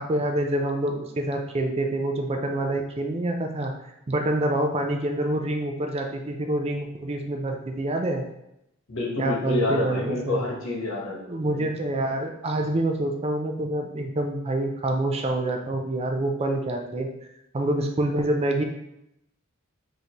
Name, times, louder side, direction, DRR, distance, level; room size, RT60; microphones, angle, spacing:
voice 1, 0.0-3.7 4.1-8.2 9.2-10.5 11.3-17.1 17.5-18.6, right 1 dB, 30° right, 4 dB, 0.4 m, -26 dB
voice 2, 8.9-11.3 11.5-11.7, left 2 dB, 65° left, -2 dB, 1.1 m, -28 dB
5.4 x 2.8 x 2.9 m, 0.83 s
head